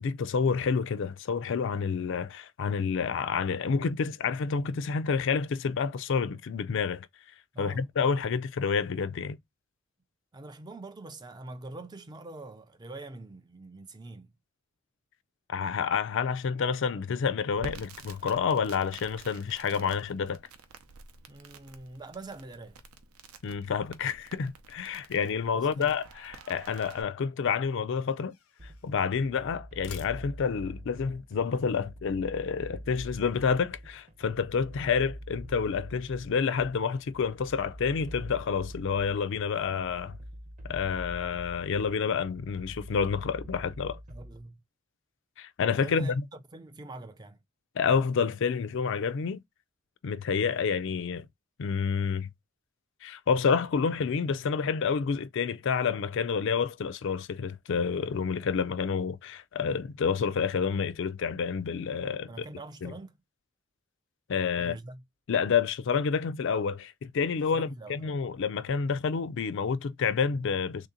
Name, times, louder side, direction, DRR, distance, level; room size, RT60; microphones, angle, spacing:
voice 1, 0.0-7.1 7.6-9.4 15.5-20.4 23.4-28.3 28.8-40.2 40.7-44.0 45.4-46.2 47.8-49.4 50.0-51.3 51.6-52.3 53.0-62.5 62.8-62.9 64.3-64.8 65.3-70.9, left 6 dB, 55° left, 0.4 m, -29 dB
voice 2, 7.5-7.9 10.3-14.3 21.3-22.8 25.5-25.9 34.8-34.9 44.1-44.6 45.8-47.4 62.0-63.1 64.6-65.0 67.5-68.2, right 2 dB, 20° right, 0.4 m, -44 dB
Crackle, 17.6-27.0, right 4 dB, 90° right, 0.6 m, -50 dB
sound 1, 26.2-27.0 27.9-29.0 29.6-30.7, left 6 dB, 85° left, 0.7 m, -51 dB
sound 2, 28.6-44.5, equal, 35° right, 0.8 m, -45 dB
3.4 x 2.8 x 3.7 m
head